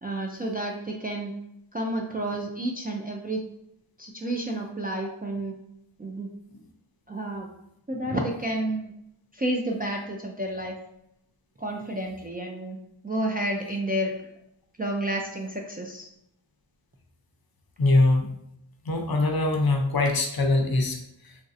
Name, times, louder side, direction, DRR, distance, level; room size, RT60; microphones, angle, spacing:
voice 1, 0.0-1.3 1.7-3.4 4.0-5.5 6.0-6.3 7.1-7.5 7.9-8.9 9.3-10.7 11.6-12.8 13.0-14.1 14.8-16.1, right 1 dB, 20° right, -1 dB, 0.3 m, -30 dB
voice 2, 17.8-18.3 18.8-21.4, left 2 dB, 50° left, 3 dB, 0.6 m, -23 dB
3.1 x 2.6 x 2.5 m, 0.78 s
wide cardioid pair, 65°, 49 cm